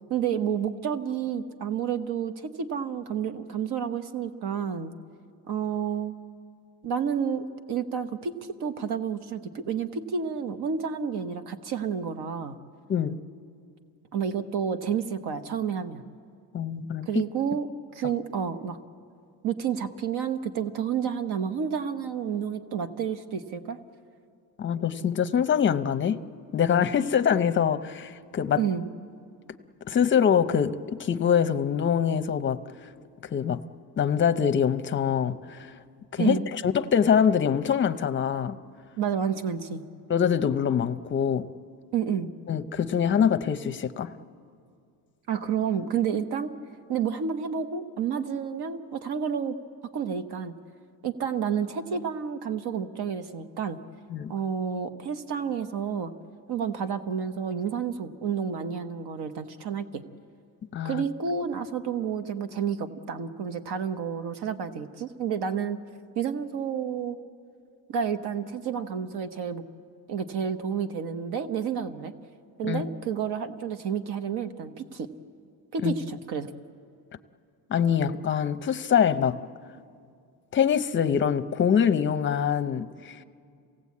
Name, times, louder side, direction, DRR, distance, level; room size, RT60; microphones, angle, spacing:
voice 1, 0.1-4.9 5.5-6.1 6.8-8.3 8.6-12.6 14.1-16.0 17.1-17.7 17.9-18.8 19.4-23.8 28.6-28.9 36.2-36.5 39.0-39.8 41.9-42.3 45.3-46.5 46.9-49.6 49.9-50.5 51.0-53.8 54.3-56.1 56.5-60.0 60.8-65.8 66.2-67.2 67.9-69.6 70.1-72.1 72.6-75.1 75.7-76.5, right 7 dB, 70° right, 9 dB, 1.1 m, -30 dB
voice 2, 16.5-17.2 24.6-26.2 26.5-28.6 29.9-32.6 33.3-33.6 34.0-35.7 36.1-38.6 40.1-41.5 42.5-44.1 54.1-54.3 60.7-61.0 72.6-72.8 75.8-75.9 77.7-79.4 80.5-83.2, left 8 dB, 30° left, 10 dB, 0.6 m, -24 dB
27.0 x 17.0 x 8.4 m, 2.3 s
cardioid pair, 155°, 41 cm